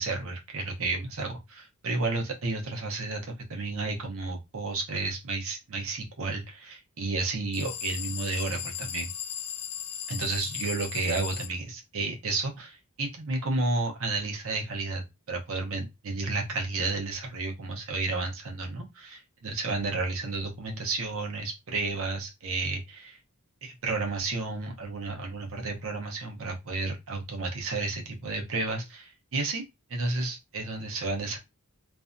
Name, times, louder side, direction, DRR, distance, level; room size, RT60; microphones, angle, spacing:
voice 1, 0.0-9.1 10.1-23.2 23.6-29.6 29.9-31.4, right 3 dB, 65° right, 1 dB, 0.7 m, -32 dB
sound 1, 7.5-11.5, left 9 dB, 70° left, 0.5 m, -37 dB
2.5 x 2.2 x 2.5 m, 0.23 s
head